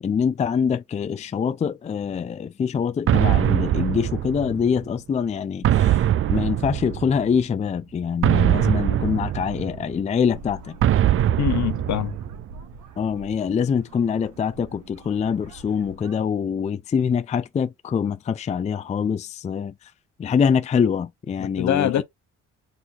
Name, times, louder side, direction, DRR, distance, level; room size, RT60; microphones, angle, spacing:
voice 1, 0.0-10.8 13.0-19.9 20.2-22.0, left 7 dB, 25° left, 0.4 m, -24 dB
sound 1, 3.1-4.8 5.6-7.4 8.2-10.0 10.8-12.6, right 12 dB, 45° right, 0.4 m, -22 dB
sound 2, 10.3-16.2, right 2 dB, 90° right, 1.2 m, -43 dB
voice 2, 11.4-12.2 21.4-22.0, left 11 dB, 70° left, 0.8 m, -24 dB
4.0 x 2.7 x 4.2 m
cardioid pair, 90°, 30 cm